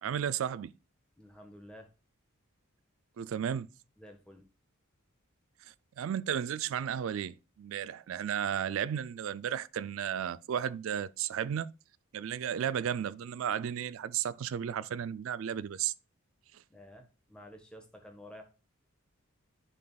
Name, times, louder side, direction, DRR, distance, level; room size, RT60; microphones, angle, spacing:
voice 1, 0.0-0.7 3.2-3.7 6.0-11.7 12.1-15.9, right 9 dB, 65° right, 0.3 m, -34 dB
voice 2, 1.2-1.9 4.0-4.5 16.7-18.4, left 1 dB, 5° left, 1.3 m, -51 dB
11.0 x 3.9 x 2.3 m
head